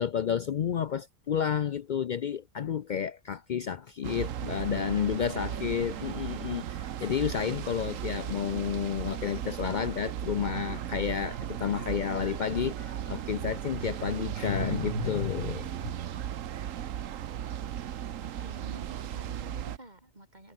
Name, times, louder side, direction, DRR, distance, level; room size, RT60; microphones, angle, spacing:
voice 1, 0.0-15.9, left 8 dB, 80° left, 0.4 m, -31 dB
sound 1, 4.0-19.8, right 10 dB, 65° right, 1.2 m, -36 dB
voice 2, 4.7-6.2 18.2-20.5, right 1 dB, 30° right, 5.0 m, -48 dB
omnidirectional pair, 1.5 m